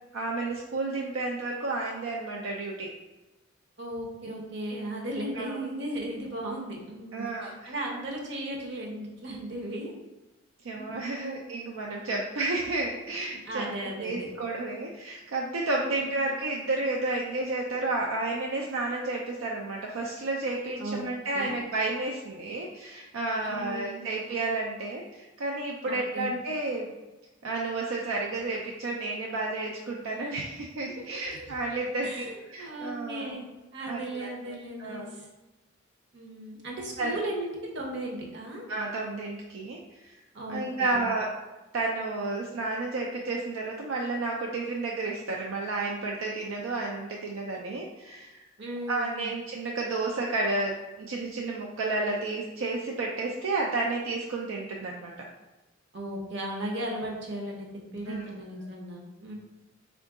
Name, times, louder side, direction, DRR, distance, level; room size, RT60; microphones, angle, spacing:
voice 1, 0.1-2.9 5.3-5.6 7.1-7.7 10.6-13.7 14.0-26.9 27.4-33.4 33.8-34.3 34.8-35.2 37.0-37.2 38.7-40.1 40.5-41.3 41.7-48.5 48.9-55.3 58.1-58.2, right 2 dB, 80° right, -1 dB, 0.4 m, -31 dB
voice 2, 3.8-9.9 10.7-11.4 13.5-14.3 15.8-16.3 20.8-21.0 21.3-21.5 23.4-24.1 25.8-26.3 31.0-31.2 32.0-35.3 36.1-38.7 40.3-41.1 48.6-49.3 55.9-59.4, right 1 dB, 60° right, -1 dB, 0.8 m, -36 dB
3.7 x 2.5 x 3.5 m, 1.1 s
head